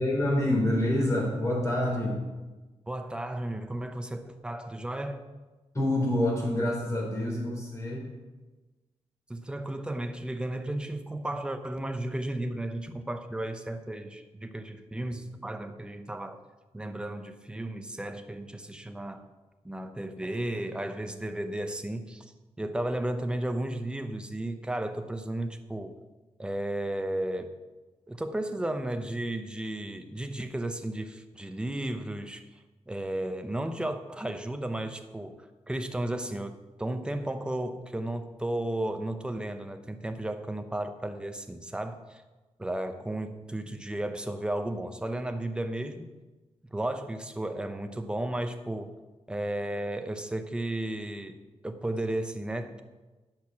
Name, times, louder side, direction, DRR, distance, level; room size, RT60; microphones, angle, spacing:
voice 1, 0.0-2.2 5.7-8.1, left 1 dB, 25° left, -2 dB, 3.3 m, -27 dB
voice 2, 2.9-5.3 9.3-16.4 16.7-19.3 19.6-26.0 26.4-27.5 28.1-36.5 36.8-42.2 42.6-46.1 46.7-48.9 49.3-51.4 51.6-52.8, right 1 dB, 10° right, 7 dB, 0.7 m, -34 dB
10.5 x 6.3 x 5.8 m, 1.2 s
wide cardioid pair, 150°, 12 cm